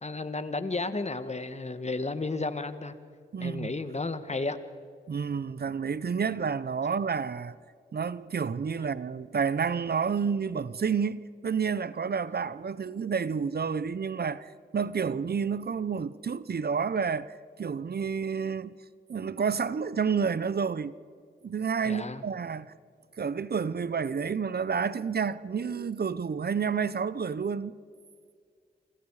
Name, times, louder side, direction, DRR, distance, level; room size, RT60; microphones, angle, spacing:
voice 1, 0.0-3.0 3.4-4.6 21.8-22.2, left 3 dB, 35° left, 1.9 m, -33 dB
voice 2, 3.3-3.7 5.1-7.6 7.9-18.8 19.1-20.9 21.4-22.7 23.2-27.7, right 6 dB, 55° right, 0.9 m, -30 dB
27.0 x 26.0 x 5.0 m
cardioid pair, 40°, 19 cm